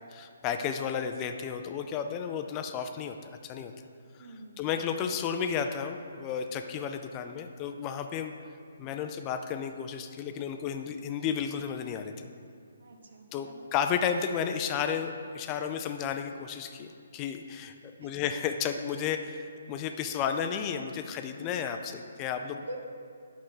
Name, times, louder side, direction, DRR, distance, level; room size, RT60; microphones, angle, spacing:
voice 1, 0.1-3.7 4.6-8.3 8.8-12.1 13.3-22.8, left 7 dB, 25° left, 7 dB, 0.4 m, -33 dB
voice 2, 4.2-4.6 12.8-13.7 18.0-18.2 22.7-22.8, right 2 dB, 65° right, 4 dB, 1.0 m, -44 dB
8.8 x 6.1 x 3.8 m, 2.4 s
hypercardioid pair, 145°, 0 cm